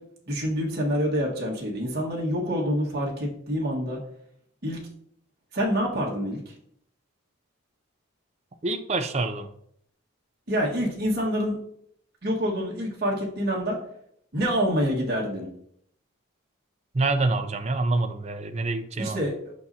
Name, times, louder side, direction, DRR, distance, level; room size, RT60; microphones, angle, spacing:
voice 1, 0.3-4.0 4.6-4.8 5.5-6.5 10.5-11.6 12.2-13.8 14.3-15.5 19.0-19.5, equal, 50° right, -3 dB, 1.7 m, -27 dB
voice 2, 8.6-9.5 16.9-19.2, right 3 dB, 30° right, 8 dB, 0.5 m, -26 dB
8.2 x 5.5 x 2.8 m, 0.68 s
head